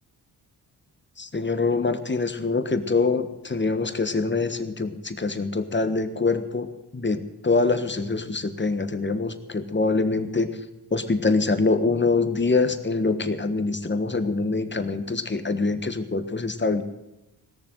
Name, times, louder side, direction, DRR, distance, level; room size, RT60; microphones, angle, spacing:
voice 1, 1.2-10.5 10.9-16.8, left 3 dB, 25° left, 10 dB, 1.5 m, -24 dB
17.5 x 6.9 x 9.1 m, 0.98 s
cardioid pair, 60°, 43 cm